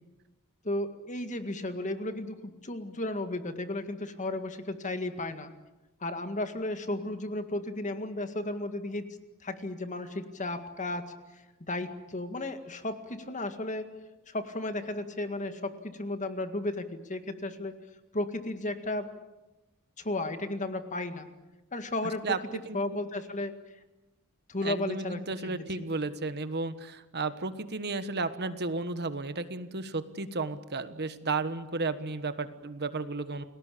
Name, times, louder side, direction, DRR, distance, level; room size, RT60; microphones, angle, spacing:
voice 1, 0.6-5.5 6.0-11.1 11.3-11.4 11.7-13.9 14.3-17.7 18.1-19.1 20.0-21.3 21.7-23.5 24.5-25.9, left 2 dB, 35° left, 8 dB, 1.9 m, -34 dB
voice 2, 22.2-22.8 24.6-33.4, right 3 dB, 50° right, 11 dB, 1.4 m, -33 dB
29.5 x 19.0 x 8.5 m, 1.1 s
head